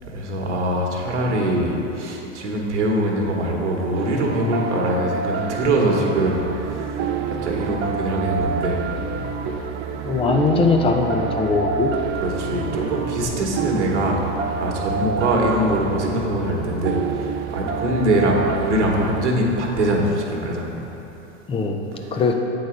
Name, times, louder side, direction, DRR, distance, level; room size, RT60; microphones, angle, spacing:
voice 1, 0.1-8.8 12.2-14.2 14.5-20.8 22.1-22.2, right 1 dB, 75° right, -1 dB, 1.2 m, -23 dB
sound 1, 3.9-19.3, right 6 dB, 30° right, 0.4 m, -28 dB
voice 2, 10.0-11.9 15.0-15.2 21.5-22.3, left 4 dB, 15° left, 3 dB, 0.5 m, -21 dB
8.3 x 4.0 x 4.9 m, 3.0 s
hypercardioid pair, 100°, 36 cm